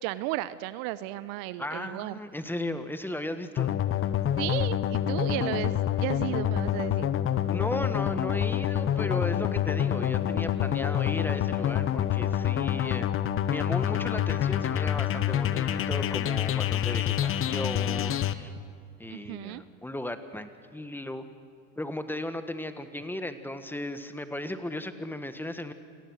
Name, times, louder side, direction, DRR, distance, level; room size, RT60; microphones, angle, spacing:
voice 1, 0.0-2.2 4.4-7.1 19.1-19.6, right 17 dB, 55° right, 16 dB, 0.8 m, -34 dB
voice 2, 1.6-3.7 7.5-13.1 13.5-18.5 19.0-21.2 21.8-25.7, left 1 dB, 5° left, 9 dB, 1.5 m, -36 dB
sound 1, 3.6-18.3, left 10 dB, 35° left, 1.1 m, -27 dB
28.5 x 18.0 x 6.5 m, 2.2 s
hypercardioid pair, 85°, 38 cm